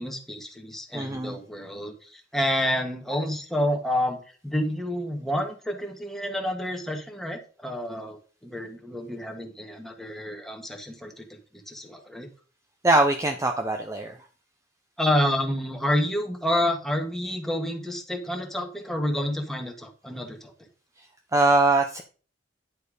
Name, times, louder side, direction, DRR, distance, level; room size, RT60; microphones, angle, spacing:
voice 1, 0.0-4.2 4.4-12.3 15.0-20.7, left 1 dB, ahead, 2 dB, 1.6 m, -29 dB
voice 2, 0.9-1.4 12.8-14.2 21.0-22.0, right 2 dB, 15° right, 5 dB, 0.6 m, -22 dB
10.0 x 4.5 x 5.0 m, 0.39 s
head